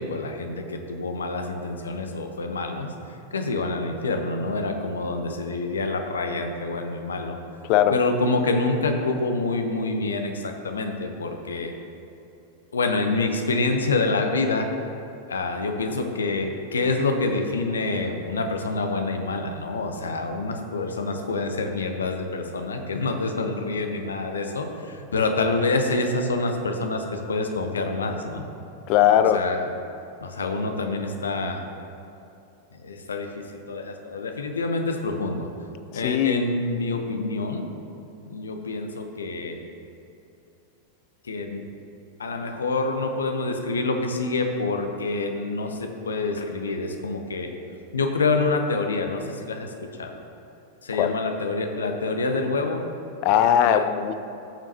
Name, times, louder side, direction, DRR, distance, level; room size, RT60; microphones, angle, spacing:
voice 1, 0.0-2.9 3.3-7.4 7.9-11.7 12.7-14.7 15.3-28.4 29.1-29.7 30.2-31.7 32.8-35.5 35.9-37.7 38.2-39.6 41.3-41.6 42.2-47.5 47.9-49.7 50.0-50.2 50.8-52.8 53.6-53.9, left 3 dB, 70° left, 5 dB, 0.9 m, -27 dB
voice 2, 7.6-7.9 28.9-29.4 35.9-36.4 50.9-51.1 53.2-54.1, left 10 dB, 45° left, 11 dB, 0.5 m, -19 dB
14.5 x 7.1 x 2.9 m, 2.8 s
figure-of-eight pair, 90°, 0 cm